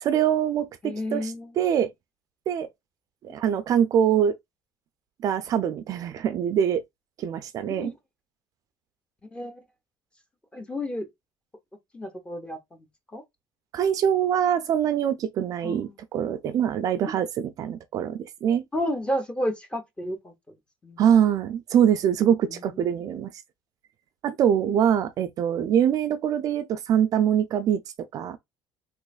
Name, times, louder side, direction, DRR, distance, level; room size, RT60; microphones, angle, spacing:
voice 1, 0.0-1.9 2.5-2.7 3.2-4.3 5.2-6.8 7.2-7.9 13.7-18.6 21.0-23.3 24.2-27.8 28.1-28.4, right 9 dB, 50° right, 0.4 m, -24 dB
voice 2, 0.8-1.5 7.7-7.9 9.3-9.6 10.5-11.1 11.9-12.6 13.1-13.2 15.6-15.9 18.7-20.3 20.8-21.0 22.5-22.6, equal, 15° left, 0.7 m, -31 dB
3.4 x 3.1 x 2.3 m
cardioid pair, 130°, 8 cm